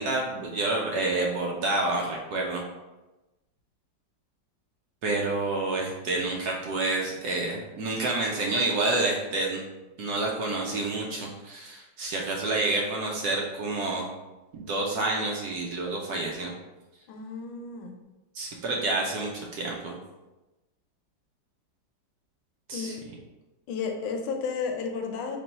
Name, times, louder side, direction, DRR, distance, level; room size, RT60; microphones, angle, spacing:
voice 1, 0.0-2.6 5.0-9.6 10.0-14.1 14.5-16.5 18.3-20.0 22.7-23.0, right 2 dB, 65° right, -1 dB, 1.0 m, -28 dB
voice 2, 17.1-18.0 22.7-22.9 23.7-25.4, left 5 dB, 85° left, 4 dB, 1.4 m, -32 dB
3.4 x 3.0 x 3.9 m, 1.0 s
omnidirectional pair, 2.1 m